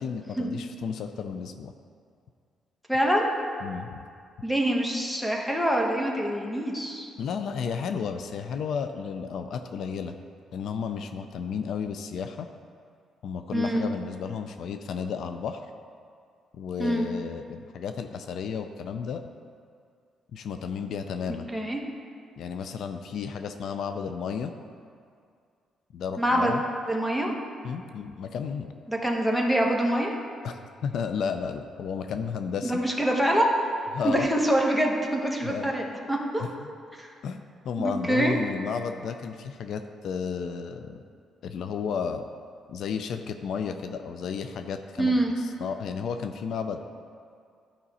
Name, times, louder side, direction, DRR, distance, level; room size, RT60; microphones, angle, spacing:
voice 1, 0.0-1.7 3.6-4.0 7.2-10.2 10.5-12.5 13.2-15.6 16.5-19.2 20.3-21.5 22.4-24.5 25.9-26.6 27.6-28.7 30.4-32.7 33.9-34.3 35.4-35.7 36.4-36.7 37.2-41.0 41.4-42.3 42.7-46.8, left 6 dB, 70° left, 8 dB, 0.4 m, -33 dB
voice 2, 2.9-3.3 4.4-7.1 13.5-13.9 16.8-17.1 21.5-21.8 26.2-26.5 26.9-27.3 28.9-30.1 32.6-33.5 34.0-36.4 37.0-37.1 37.8-38.3 45.0-45.3, right 1 dB, 5° left, 0 dB, 1.2 m, -25 dB
11.5 x 5.1 x 4.2 m, 2.3 s
cardioid pair, 90°, 0 cm